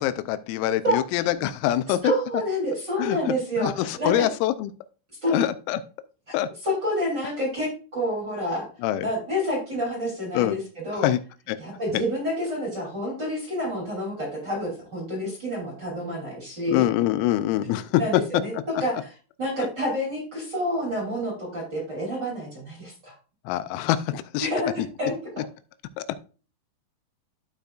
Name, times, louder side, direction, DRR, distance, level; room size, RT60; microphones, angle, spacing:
voice 1, 0.0-2.1 3.0-3.2 3.6-4.7 5.3-5.8 6.3-6.5 8.8-9.1 10.3-10.6 11.0-11.2 11.5-11.6 11.9-12.0 16.7-18.0 19.6-19.7 23.5-24.5 24.8-24.9 26.0-26.2, left 13 dB, 85° left, 12 dB, 3.3 m, -24 dB
voice 2, 1.9-4.3 5.2-5.4 6.6-8.7 9.0-11.1 11.6-16.8 18.0-19.1 19.4-23.1 24.4-25.1, equal, 25° right, -4 dB, 2.7 m, -28 dB
14.5 x 5.1 x 2.4 m, 0.36 s
omnidirectional pair, 6.0 m